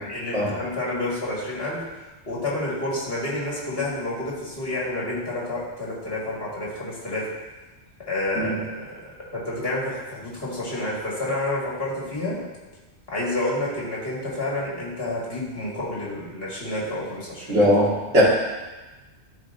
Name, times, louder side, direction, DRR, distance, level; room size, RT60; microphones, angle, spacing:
voice 1, 0.0-1.8 2.3-7.3 8.1-8.7 9.3-12.4 13.1-17.7, left 1 dB, 55° left, -6 dB, 2.1 m, -29 dB
voice 2, 17.5-18.2, equal, 85° right, -7 dB, 2.3 m, -19 dB
11.5 x 4.3 x 2.6 m, 1.2 s
omnidirectional pair, 1.2 m